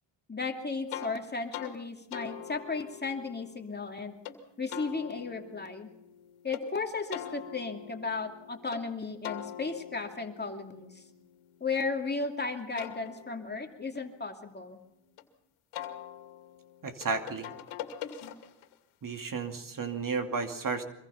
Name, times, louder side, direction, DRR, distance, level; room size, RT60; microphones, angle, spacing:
voice 1, 0.3-4.1 4.6-5.9 6.4-11.0 11.6-14.8, left 4 dB, 20° left, 3 dB, 2.7 m, -35 dB
sound 1, 0.9-1.1 1.5-1.7 2.1-4.4 4.7-6.6 7.1-8.8 9.2-12.1 12.5-15.2 15.7-18.7, left 10 dB, 85° left, 2.6 m, -44 dB
voice 2, 16.8-17.5 19.0-20.8, right 4 dB, 40° right, 6 dB, 2.6 m, -33 dB
25.0 x 22.5 x 5.8 m, 0.84 s
cardioid pair, 85°, 49 cm